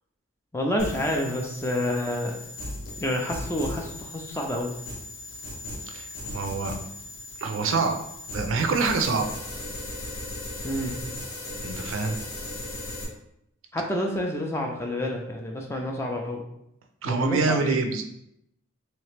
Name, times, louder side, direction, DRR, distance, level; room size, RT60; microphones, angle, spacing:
voice 1, 0.5-2.4 3.0-4.7 10.6-11.0 13.7-16.4 17.0-17.8, left 1 dB, 10° left, 1 dB, 0.4 m, -28 dB
sound 1, 0.8-13.0, left 2 dB, 60° left, 0.9 m, -37 dB
voice 2, 5.9-6.7 7.4-7.9 8.3-9.3 11.6-12.2 17.0-18.0, right 4 dB, 70° right, 5 dB, 0.4 m, -26 dB
3.1 x 2.9 x 3.2 m, 0.77 s
head